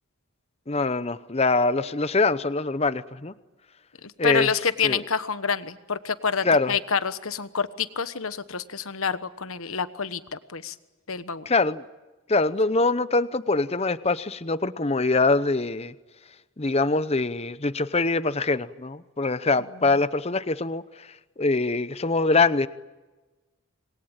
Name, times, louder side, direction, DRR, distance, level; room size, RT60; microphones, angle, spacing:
voice 1, 0.7-3.3 4.2-4.5 4.8-5.0 6.4-6.7 11.5-11.8 12.3-15.9 16.6-21.1 21.4-22.7, left 3 dB, 30° left, 14 dB, 0.8 m, -23 dB
voice 2, 4.0-10.7 11.1-11.5, left 6 dB, 75° left, 12 dB, 1.3 m, -28 dB
27.0 x 21.5 x 8.9 m, 1.2 s
head